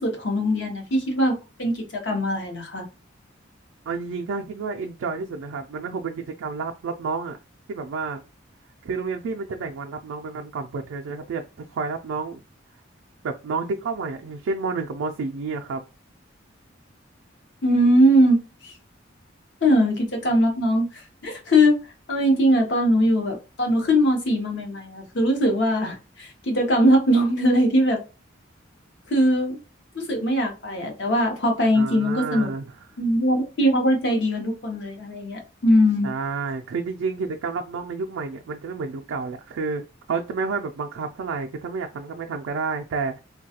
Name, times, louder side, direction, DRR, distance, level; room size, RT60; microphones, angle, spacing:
voice 1, 0.0-2.8 17.6-18.7 19.6-21.8 22.1-28.0 29.1-29.6 29.9-32.5 33.0-36.1, equal, 60° left, 3 dB, 0.7 m, -21 dB
voice 2, 3.9-7.4 7.7-8.2 8.8-11.4 11.7-12.4 13.2-15.8 31.7-32.7 36.0-39.8 40.1-43.2, right 4 dB, 80° right, 3 dB, 0.3 m, -30 dB
3.1 x 2.2 x 2.8 m, 0.31 s
head